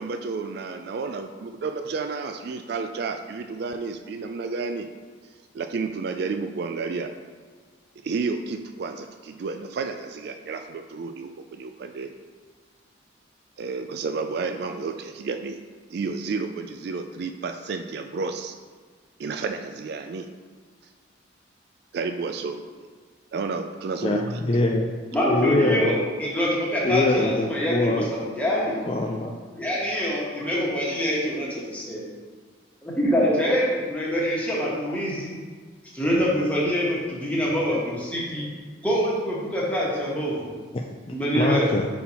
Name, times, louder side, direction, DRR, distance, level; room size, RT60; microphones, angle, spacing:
voice 1, 0.0-4.9 5.5-7.1 8.0-12.1 13.6-15.6 15.9-18.6 19.2-20.3 21.9-22.6 23.3-24.4, right 4 dB, 55° right, 7 dB, 0.3 m, -31 dB
voice 2, 24.0-24.9 25.3-25.9 26.8-28.1 28.9-29.3 40.7-41.9, left 2 dB, 30° left, 0 dB, 0.3 m, -24 dB
voice 3, 25.1-28.8 29.6-32.0 32.8-35.4 35.9-38.4 38.8-40.5 41.1-41.7, equal, 5° left, -6 dB, 1.3 m, -25 dB
5.5 x 4.2 x 4.2 m, 1.5 s
head